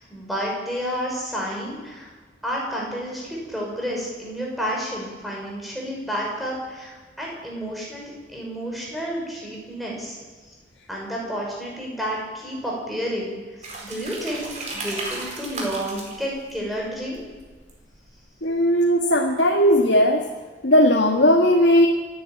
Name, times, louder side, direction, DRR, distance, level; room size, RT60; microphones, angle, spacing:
voice 1, 0.1-2.1 2.4-10.2 10.5-10.6 10.9-13.4 13.8-17.2, equal, ahead, -3 dB, 6.1 m, -30 dB
sound 1, 13.6-18.3, right 2 dB, 40° right, 4.6 m, -36 dB
voice 2, 18.4-20.2 20.6-21.9, equal, 75° left, 1 dB, 1.8 m, -17 dB
27.5 x 11.0 x 9.0 m, 1.3 s
head